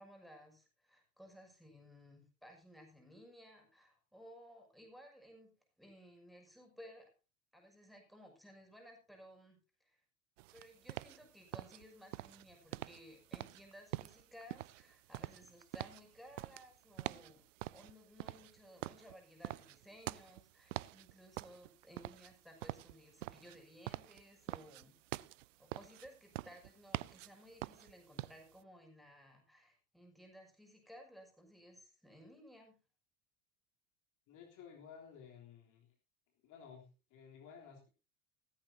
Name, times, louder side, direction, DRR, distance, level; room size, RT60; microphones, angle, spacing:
voice 1, 0.0-5.5 5.8-7.1 7.5-10.0 10.5-17.4 17.7-25.0 25.6-32.8, equal, ahead, 2 dB, 6.6 m, -58 dB
sound 1, 10.4-28.6, right 17 dB, 60° right, 0.6 m, -46 dB
voice 2, 34.3-35.9 36.4-37.9, left 7 dB, 45° left, 0 dB, 3.6 m, -55 dB
17.5 x 14.5 x 2.8 m, 0.33 s
figure-of-eight pair, 75°, 44 cm